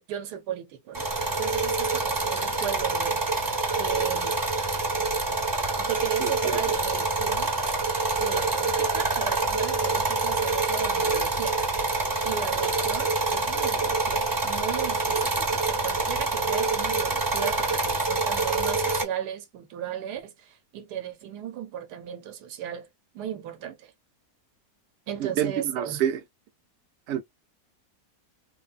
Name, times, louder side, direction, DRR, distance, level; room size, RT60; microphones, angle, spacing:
voice 1, 0.0-3.2 3.8-4.4 5.8-7.6 8.2-11.6 12.2-22.9 23.1-23.9 25.1-26.0, right 9 dB, 85° right, 1.3 m, -36 dB
sound 1, 0.9-19.0, right 3 dB, 15° right, 0.9 m, -26 dB
voice 2, 25.2-26.2 27.1-27.2, right 10 dB, 60° right, 0.8 m, -27 dB
3.4 x 2.1 x 2.4 m
omnidirectional pair, 1.7 m